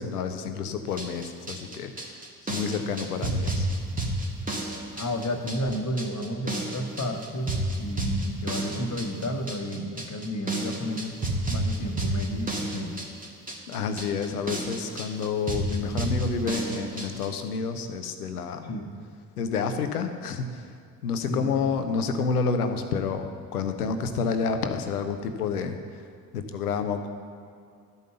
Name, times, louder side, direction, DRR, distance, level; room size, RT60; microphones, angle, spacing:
voice 1, 0.0-2.2 2.5-3.7 13.7-18.7 19.4-20.7 21.0-26.1 26.3-27.1, left 5 dB, 90° left, 8 dB, 0.7 m, -29 dB
sound 1, 0.9-17.3, right 1 dB, 20° right, 1.8 m, -31 dB
voice 2, 5.0-11.2 11.5-12.9 18.6-18.9 21.3-21.5, equal, 35° left, 5 dB, 1.3 m, -31 dB
12.0 x 5.4 x 6.7 m, 2.4 s
hypercardioid pair, 50°, 44 cm